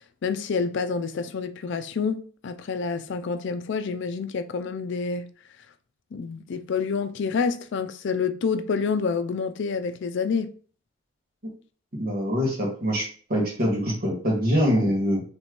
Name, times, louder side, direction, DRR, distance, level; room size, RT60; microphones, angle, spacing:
voice 1, 0.2-5.3 6.1-10.5, left 5 dB, 65° left, 0.4 m, -28 dB
voice 2, 12.0-13.0 13.3-15.2, equal, 50° right, 1.8 m, -24 dB
4.3 x 3.4 x 3.0 m
head